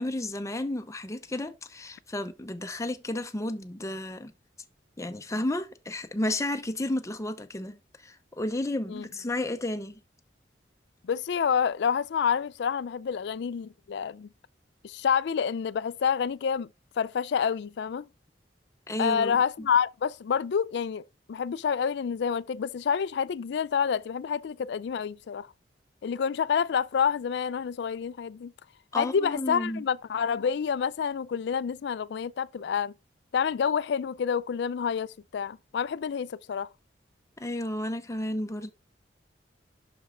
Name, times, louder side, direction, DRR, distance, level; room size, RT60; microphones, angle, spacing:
voice 1, 0.0-4.3 5.0-10.0 18.9-19.4 28.9-29.8 37.4-38.7, left 1 dB, 15° left, 0.7 m, -32 dB
voice 2, 11.0-14.3 14.8-16.7 17.0-18.1 19.0-25.5 26.0-28.5 28.9-32.9 33.3-36.7, left 7 dB, 65° left, 0.4 m, -28 dB
6.1 x 5.3 x 3.8 m
head